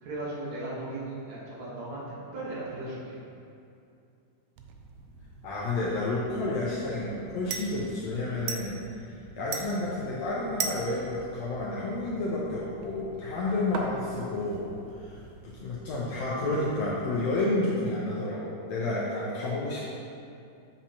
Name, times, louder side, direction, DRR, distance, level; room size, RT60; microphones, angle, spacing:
voice 1, 0.0-2.0 2.3-3.2, right 2 dB, 65° right, -7 dB, 2.5 m, -36 dB
sound 1, 4.6-17.4, right 6 dB, 80° right, 1.8 m, -42 dB
voice 2, 5.4-9.1 9.4-14.7 15.0-19.9, left 2 dB, 70° left, -6 dB, 1.7 m, -30 dB
7.5 x 7.0 x 2.9 m, 2.6 s
omnidirectional pair, 3.7 m